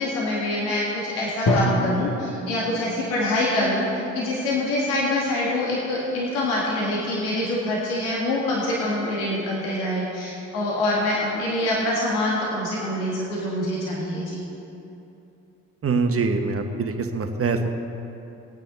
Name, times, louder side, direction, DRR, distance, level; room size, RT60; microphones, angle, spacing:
voice 1, 0.0-14.4, left 1 dB, 80° left, -5 dB, 2.1 m, -25 dB
Drum, 1.5-3.4, left 1 dB, 50° left, 1.9 m, -26 dB
voice 2, 15.8-17.7, right 4 dB, 35° right, 5 dB, 1.3 m, -24 dB
19.0 x 9.0 x 4.0 m, 2.8 s
hypercardioid pair, 50°, 39 cm